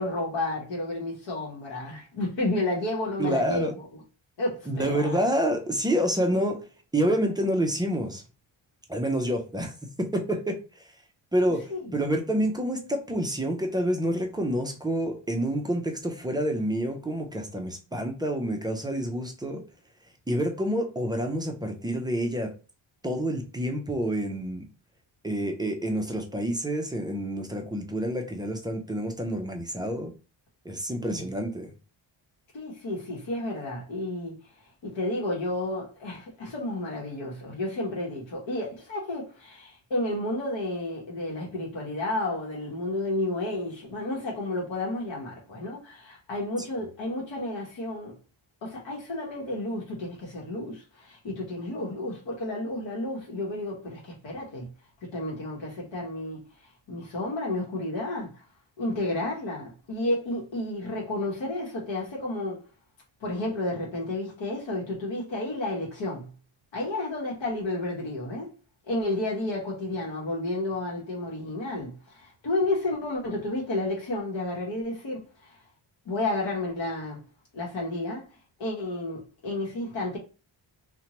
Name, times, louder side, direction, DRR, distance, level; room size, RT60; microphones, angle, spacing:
voice 1, 0.0-3.7 4.4-5.2 11.7-12.2 31.1-31.2 32.5-34.4 34.8-48.2 48.6-54.7 55.0-56.4 56.9-58.3 58.8-62.6 63.2-66.3 66.7-68.5 68.9-75.6 76.1-77.2 77.5-78.3 78.6-80.2, left 2 dB, 65° left, 0.9 m, -31 dB
voice 2, 3.2-3.7 4.7-6.6 6.9-8.2 8.9-9.7 10.0-10.6 11.3-11.6 11.9-19.6 20.3-22.5 23.0-24.6 25.2-30.1 30.7-31.7, right 1 dB, 10° right, 0.3 m, -28 dB
2.8 x 2.1 x 2.8 m
wide cardioid pair, 135°, 48 cm